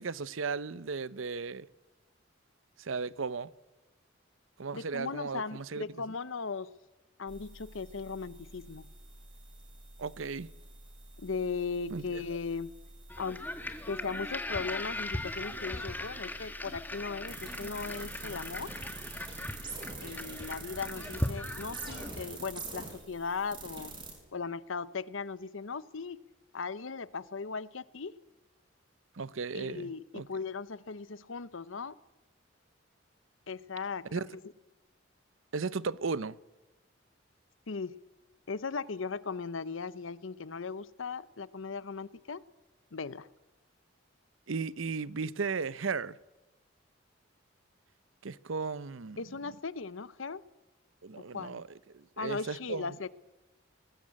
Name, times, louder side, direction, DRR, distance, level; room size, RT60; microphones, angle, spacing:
voice 1, 0.0-1.7 2.8-3.5 4.6-5.8 10.0-10.5 11.9-12.2 29.2-30.2 34.1-34.3 35.5-36.4 44.5-46.2 48.2-49.2 51.0-51.7 51.9-53.0, right 4 dB, 75° right, 0.7 m, -35 dB
voice 2, 4.7-6.7 7.2-8.9 11.2-12.7 13.2-13.4 13.9-18.7 20.0-23.9 24.3-26.2 26.5-28.2 29.5-32.0 33.5-34.4 37.7-38.0 38.5-42.4 42.9-43.3 49.2-50.4 51.2-51.6 52.2-53.1, left 4 dB, 75° left, 0.8 m, -38 dB
sound 1, 7.3-24.1, right 3 dB, 25° right, 6.1 m, -46 dB
sound 2, 13.1-22.4, left 1 dB, 10° left, 1.3 m, -39 dB
20.0 x 20.0 x 8.7 m
head